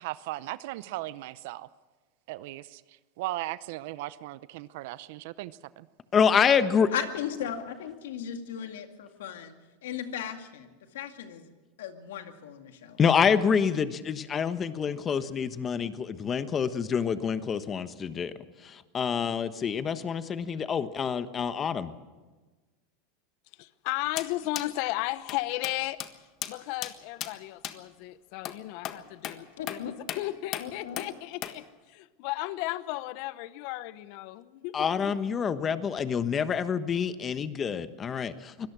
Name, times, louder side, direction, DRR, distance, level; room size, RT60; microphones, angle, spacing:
voice 1, 0.0-1.7 2.3-5.9, right 17 dB, 70° right, 16 dB, 0.7 m, -37 dB
voice 2, 6.1-6.9 13.0-18.3 18.6-21.9 34.7-38.7, left 7 dB, 25° left, 12 dB, 1.2 m, -27 dB
voice 3, 6.9-9.6 9.8-11.4 11.8-13.2 29.8-29.9 30.6-31.1, left 9 dB, 85° left, 6 dB, 2.2 m, -37 dB
voice 4, 23.6-26.0 26.5-29.4 29.7-29.8 30.2-35.1, left 17 dB, 60° left, 16 dB, 0.9 m, -34 dB
sound 1, 24.2-24.3 24.6-24.7 25.3-25.4 25.6-25.8 26.0-26.1 26.4-26.5 26.8-26.9 27.2-27.3 27.6-27.8 28.5-28.6 28.9-29.0 29.2-29.4 29.7-29.8 30.1-30.2 30.5-30.7 31.0-31.1 31.4-31.6, left 12 dB, 45° left, 1.5 m, -35 dB
24.0 x 18.0 x 6.2 m, 1.3 s
supercardioid pair, 125°, 0 cm